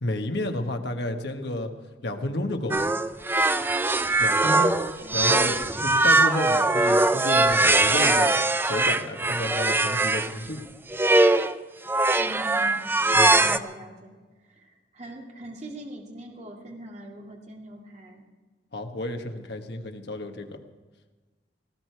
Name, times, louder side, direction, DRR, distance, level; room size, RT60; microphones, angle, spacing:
voice 1, 0.0-1.7 2.0-2.9 4.2-4.7 5.1-10.7 13.1-13.6 18.7-20.6, left 1 dB, 65° left, 5 dB, 1.4 m, -31 dB
sound 1, 2.7-10.3 10.9-11.5 11.9-13.6, right 2 dB, 10° right, 0.5 m, -21 dB
voice 2, 5.0-5.5 12.2-13.0 13.3-14.2 14.4-18.2, right 1 dB, 40° right, 0 dB, 2.3 m, -42 dB
19.0 x 16.0 x 4.7 m, 1.3 s
head